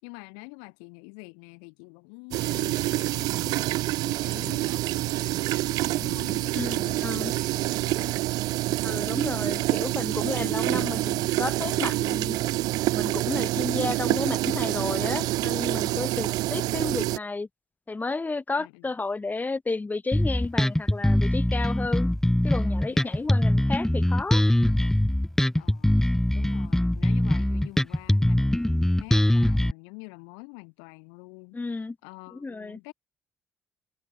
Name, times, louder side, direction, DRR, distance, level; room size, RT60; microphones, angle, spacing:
voice 1, 0.0-8.2 15.8-16.3 18.6-18.9 22.9-23.3 25.6-26.0 26.3-32.9, left 40 dB or more, 80° left, 5.0 m, -46 dB
sound 1, 2.3-17.2, right 18 dB, 70° right, 1.1 m, -27 dB
voice 2, 6.5-7.3 8.8-12.4 12.9-17.5 17.9-22.1 22.4-24.4 31.5-32.0 32.3-32.8, left 3 dB, 25° left, 1.9 m, -32 dB
Bass guitar, 20.1-29.7, left 1 dB, 5° left, 1.6 m, -22 dB
hypercardioid pair, 50°, 7 cm